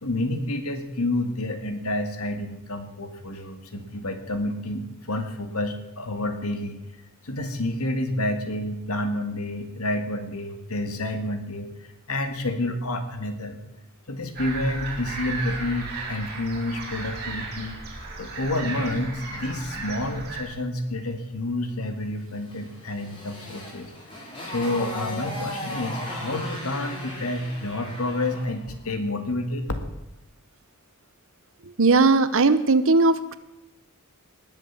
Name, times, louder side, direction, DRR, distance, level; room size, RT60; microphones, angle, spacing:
voice 1, 0.0-6.8 7.2-13.6 14.1-17.8 18.2-23.9 24.2-29.7, left 1 dB, 80° left, 7 dB, 1.9 m, -29 dB
sound 1, 14.4-20.4, right 3 dB, 45° right, 4.1 m, -35 dB
Motorcycle, 22.5-28.5, left 1 dB, 25° left, 4.5 m, -36 dB
voice 2, 31.8-33.3, right 3 dB, 65° right, 14 dB, 0.9 m, -18 dB
20.0 x 7.8 x 7.2 m, 0.91 s
head